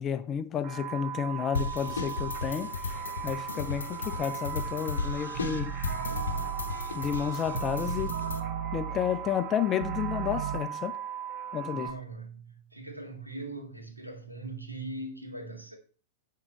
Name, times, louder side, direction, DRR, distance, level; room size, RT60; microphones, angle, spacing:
voice 1, 0.0-2.7 3.2-5.7 6.9-8.1 8.7-11.0 11.5-11.9, left 9 dB, 25° left, 0.6 m, -31 dB
sound 1, 0.6-11.9, right 9 dB, 30° right, 1.3 m, -39 dB
sound 2, 1.5-8.4, left 4 dB, 70° left, 0.9 m, -35 dB
sound 3, 5.3-10.6, right 8 dB, 55° right, 0.9 m, -36 dB
voice 2, 11.7-15.8, right 2 dB, 85° right, 1.8 m, -41 dB
9.9 x 3.8 x 4.3 m
figure-of-eight pair, 95°, 0 cm